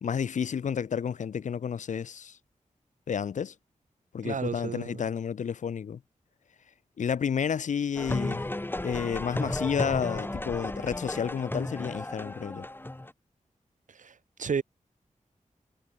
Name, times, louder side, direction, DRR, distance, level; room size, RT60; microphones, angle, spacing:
voice 1, 0.0-2.4 3.1-3.5 4.1-6.0 7.0-8.5 8.8-12.7, left 7 dB, 65° left, 0.4 m, -31 dB
voice 2, 4.2-5.0 13.9-14.6, right 6 dB, 70° right, 1.1 m, -32 dB
sound 1, 8.0-13.1, left 1 dB, 15° left, 1.1 m, -34 dB
cardioid pair, 65°, 14 cm